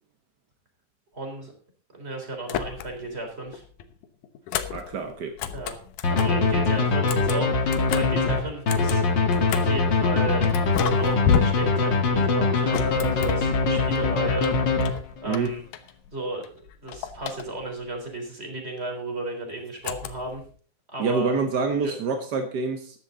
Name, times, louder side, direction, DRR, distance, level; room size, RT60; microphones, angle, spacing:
voice 1, 1.1-1.5 1.9-3.6 5.5-5.8 6.1-9.1 9.4-10.5 11.0-15.0 15.2-15.6 16.1-16.4 16.8-20.4 20.9-21.3 21.8-22.0, right 2 dB, 20° right, 3 dB, 3.7 m, -34 dB
sound 1, 2.4-3.2 3.5-6.5 6.9-9.9 10.4-14.0 14.4-16.1 16.4-17.8 19.8-20.5, left 8 dB, 85° left, 2.5 m, -32 dB
voice 2, 4.7-5.4 15.2-15.5 21.0-23.0, right 4 dB, 60° right, 6 dB, 1.1 m, -26 dB
sound 2, 6.0-15.4, left 3 dB, 40° left, 2.1 m, -23 dB
13.5 x 11.0 x 3.9 m, 0.43 s
omnidirectional pair, 3.5 m